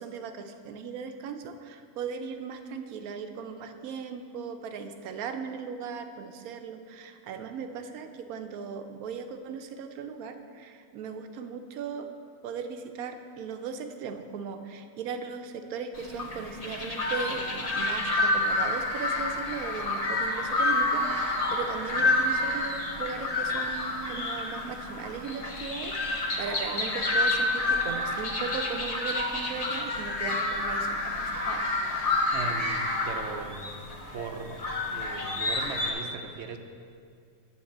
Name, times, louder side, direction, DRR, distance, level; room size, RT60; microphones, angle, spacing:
voice 1, 0.0-12.1 12.4-31.6, right 6 dB, 90° right, 7 dB, 1.1 m, -38 dB
sound 1, 15.9-35.9, left 2 dB, 30° left, 0.8 m, -29 dB
voice 2, 32.3-33.7 34.1-34.6 34.9-36.6, right 5 dB, 60° right, 7 dB, 0.8 m, -38 dB
9.4 x 3.9 x 7.2 m, 2.3 s
omnidirectional pair, 1.5 m